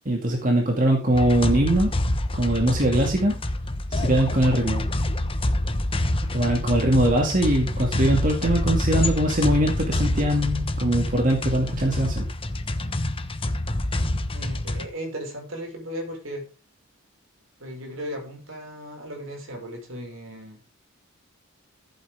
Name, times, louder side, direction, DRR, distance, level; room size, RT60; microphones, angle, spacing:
voice 1, 0.1-2.0 2.3-3.4 3.9-4.8 6.3-12.3, right 1 dB, 40° right, 1 dB, 2.5 m, -22 dB
sound 1, 1.1-14.9, left 1 dB, 25° left, 1.2 m, -26 dB
voice 2, 14.3-16.5 17.6-20.6, equal, 70° right, 2 dB, 5.8 m, -36 dB
15.0 x 8.7 x 3.7 m, 0.32 s
head